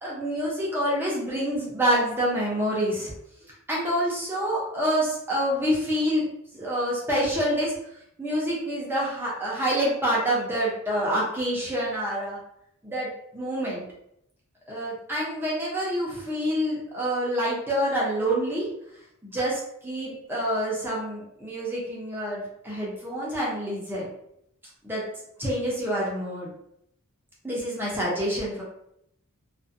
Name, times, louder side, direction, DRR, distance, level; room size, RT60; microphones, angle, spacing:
voice 1, 0.0-3.1 3.5-6.3 6.5-7.7 8.2-12.4 12.8-13.8 14.7-18.7 19.2-24.1 24.8-25.0 25.4-26.5 27.4-28.6, equal, 10° right, -6 dB, 0.5 m, -27 dB
2.4 x 2.1 x 2.5 m, 0.75 s
head